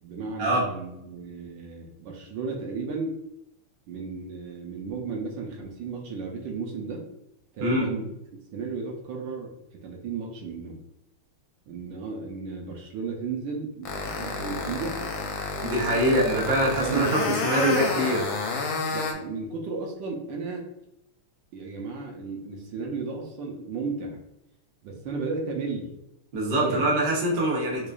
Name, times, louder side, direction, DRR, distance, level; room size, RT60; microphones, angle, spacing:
voice 1, 0.0-3.2 3.9-7.0 7.5-8.1 8.5-9.5 9.8-10.8 11.7-15.0 15.9-16.1 16.6-17.8 18.9-20.7 21.5-24.2 24.8-25.9 26.5-26.8 27.8-27.9, right 4 dB, 70° right, 1 dB, 1.1 m, -34 dB
sound 1, 13.8-19.1, left 4 dB, 75° left, 1.4 m, -30 dB
voice 2, 15.6-18.2 26.3-27.9, right 1 dB, 85° right, -4 dB, 0.4 m, -24 dB
4.8 x 2.5 x 2.3 m, 0.87 s
omnidirectional pair, 2.4 m